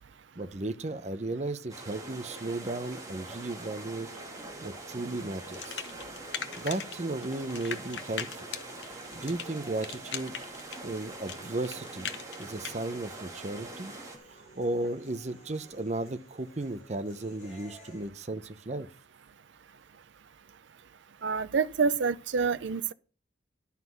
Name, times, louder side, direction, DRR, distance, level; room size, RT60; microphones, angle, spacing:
voice 1, 0.4-4.1 4.6-5.9 6.6-8.5 8.9-10.3 10.8-12.1 12.4-13.9 14.3-18.9, right 2 dB, 40° right, 0.7 m, -35 dB
sound 1, 1.7-14.2, right 2 dB, 20° right, 2.2 m, -44 dB
sound 2, 2.1-18.1, equal, 40° left, 4.6 m, -54 dB
sound 3, 5.5-7.0 7.2-12.8, left 7 dB, 75° left, 1.1 m, -39 dB
voice 2, 21.2-22.9, right 5 dB, 80° right, 0.5 m, -27 dB
11.5 x 5.8 x 6.0 m
head